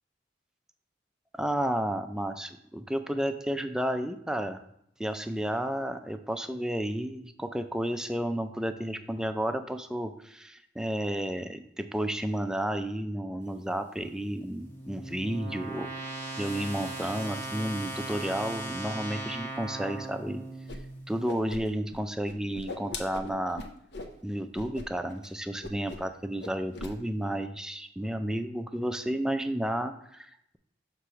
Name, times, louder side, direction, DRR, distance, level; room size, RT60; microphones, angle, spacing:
voice 1, 1.3-4.6 5.0-15.9 16.4-20.4 21.1-23.6 24.2-30.6, right 1 dB, 5° right, 7 dB, 0.3 m, -32 dB
sound 1, 14.0-21.1, right 2 dB, 10° left, 0.9 m, -39 dB
Whoosh swoosh swish, 20.7-20.8 21.1-22.0 22.2-24.1 24.5-24.9 25.1-25.3 25.6-26.1 26.4-26.9, left 2 dB, 65° left, 0.7 m, -40 dB
6.3 x 3.0 x 5.6 m, 0.73 s
head